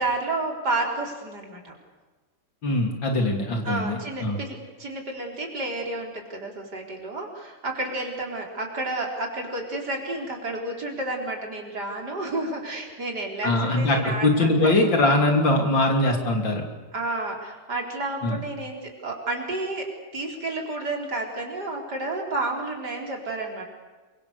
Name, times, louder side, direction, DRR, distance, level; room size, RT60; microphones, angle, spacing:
voice 1, 0.0-1.7 3.6-14.8 16.9-23.6, right 2 dB, 55° right, 1 dB, 5.0 m, -31 dB
voice 2, 2.6-4.4 13.4-16.6 18.2-18.4, left 2 dB, 75° left, 3 dB, 3.8 m, -22 dB
28.0 x 23.5 x 6.9 m, 1.3 s
omnidirectional pair, 2.1 m